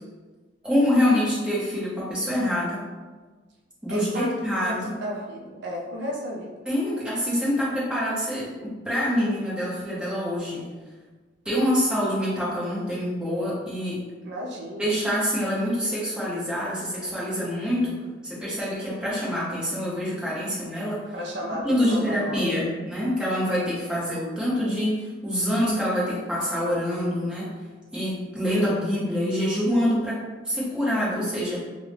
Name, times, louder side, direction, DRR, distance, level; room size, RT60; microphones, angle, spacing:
voice 1, 0.6-2.8 3.8-4.9 6.7-10.6 11.4-14.0 14.8-18.0 18.2-21.0 21.6-27.5 27.9-31.6, equal, 5° right, -8 dB, 0.9 m, -26 dB
voice 2, 3.9-6.5 14.2-14.9 21.1-22.8, equal, 65° right, -3 dB, 0.6 m, -33 dB
3.5 x 2.1 x 3.2 m, 1.3 s
head